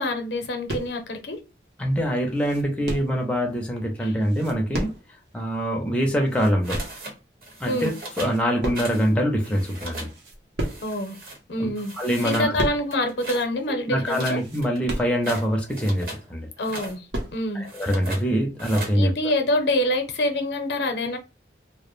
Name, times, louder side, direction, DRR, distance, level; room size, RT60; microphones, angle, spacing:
voice 1, 0.0-1.4 4.0-4.1 7.7-7.9 10.8-11.2 11.5-11.9 12.2-14.4 16.6-17.0 17.3-17.6 18.9-21.2, left 1 dB, 80° left, 0.6 m, -26 dB
sound 1, 0.7-1.1 1.6-1.7 2.1-3.2 4.2-5.3 5.5-5.6 6.1-7.0 7.6-7.9 8.1-9.2 9.5-9.6 10.0-11.0 11.5-11.7 12.1-13.0 13.2-13.3 13.7-13.8 14.2-15.5 16.0-16.1 16.4-17.4, right 1 dB, 90° right, 0.7 m, -33 dB
voice 2, 1.8-4.9 5.3-6.8 7.6-7.9 8.2-10.1 11.6-11.7 12.0-12.6 13.7-16.5 17.5-19.1, equal, 5° left, 0.4 m, -24 dB
sound 2, 6.6-7.1 7.4-8.4 8.7-9.1 9.3-10.1 10.6-11.4 11.8-12.5 12.9-13.5 14.0-16.2 16.6-17.0 17.6-18.2 18.6-19.0, right 2 dB, 50° right, 0.9 m, -37 dB
2.2 x 2.0 x 3.0 m
head